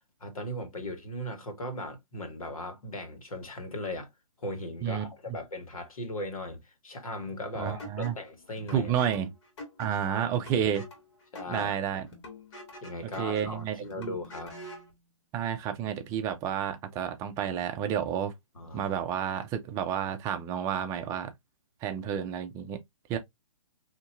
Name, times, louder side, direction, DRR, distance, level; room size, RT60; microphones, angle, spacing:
voice 1, 0.2-4.1 4.4-8.9 10.0-10.3 11.3-11.8 12.8-14.5 18.5-18.9, left 1 dB, 80° left, 1.6 m, -38 dB
voice 2, 7.5-8.2 8.7-9.3 9.8-10.8 11.5-12.1 13.2-14.1 15.3-18.3 18.7-21.3 21.8-22.8 23.1-23.2, right 9 dB, 20° right, 0.6 m, -30 dB
sound 1, 7.8-14.9, left 2 dB, 50° left, 2.2 m, -47 dB
4.2 x 2.9 x 2.6 m
hypercardioid pair, 145°, 18 cm